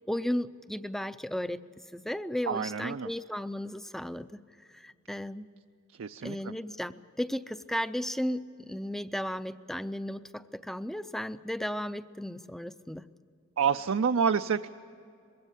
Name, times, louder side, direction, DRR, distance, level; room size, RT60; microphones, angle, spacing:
voice 1, 0.1-1.6 1.9-4.4 4.7-5.5 6.2-13.0, equal, ahead, 13 dB, 0.4 m, -35 dB
voice 2, 2.5-3.1 6.0-6.5 13.6-14.7, right 6 dB, 70° right, 8 dB, 0.5 m, -28 dB
21.5 x 16.5 x 9.8 m, 2.5 s
head